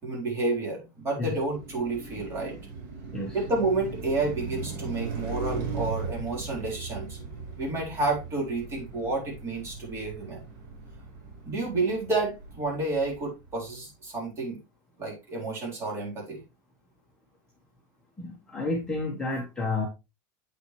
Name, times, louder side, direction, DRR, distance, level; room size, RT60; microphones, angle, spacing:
voice 1, 0.0-2.5 3.3-7.2 7.6-10.4 11.5-14.6 15.0-16.4, right 3 dB, 25° right, -1 dB, 4.0 m, -30 dB
Car passing by, 1.3-13.5, right 4 dB, 60° right, 5.7 m, -38 dB
voice 2, 18.2-19.8, left 3 dB, 5° left, -2 dB, 1.4 m, -30 dB
8.1 x 7.3 x 3.2 m, 0.25 s
supercardioid pair, 165°, 11 cm